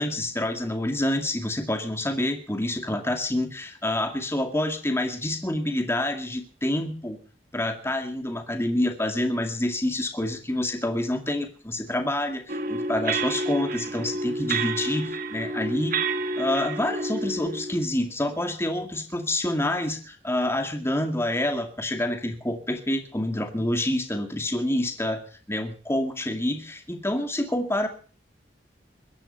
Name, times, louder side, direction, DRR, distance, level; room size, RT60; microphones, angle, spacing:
voice 1, 0.0-7.2 7.5-15.9 16.4-25.2 25.5-27.9, left 1 dB, 15° left, 5 dB, 2.2 m, -27 dB
sound 1, 12.5-17.9, right 2 dB, 55° right, 1.4 m, -29 dB
21.5 x 10.5 x 5.5 m, 0.39 s
head